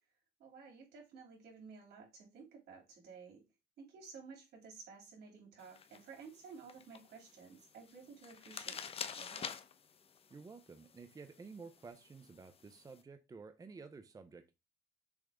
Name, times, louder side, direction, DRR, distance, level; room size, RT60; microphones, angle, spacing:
voice 1, 0.4-3.4 3.8-8.8 9.2-9.5, right 5 dB, 75° right, 3.4 m, -54 dB
sound 1, 5.6-13.0, left 6 dB, 35° left, 0.8 m, -49 dB
voice 2, 10.3-14.5, right 4 dB, 20° right, 0.7 m, -52 dB
7.1 x 3.3 x 5.0 m
cardioid pair, 110°, 17 cm